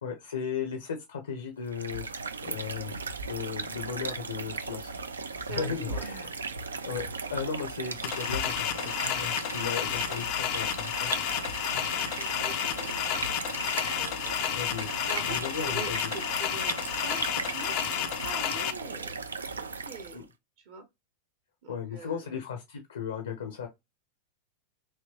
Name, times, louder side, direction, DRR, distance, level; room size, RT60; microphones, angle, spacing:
voice 1, 0.0-3.0 3.3-4.9 5.5-6.3 6.8-11.1 11.7-11.9 14.5-14.9 15.3-16.1 20.1-20.2 21.7-23.7, left 6 dB, 70° left, 0.8 m, -36 dB
sound 1, 1.6-20.3, right 4 dB, 75° right, 0.5 m, -37 dB
voice 2, 5.4-6.1 7.8-7.9 9.8-10.3 11.9-13.2 13.5-14.6 14.9-20.2 20.6-20.8 21.6-22.3, right 3 dB, 50° right, 0.9 m, -44 dB
sound 2, 8.0-18.7, left 10 dB, 45° left, 0.5 m, -31 dB
3.5 x 2.9 x 2.8 m
figure-of-eight pair, 90°, 0 cm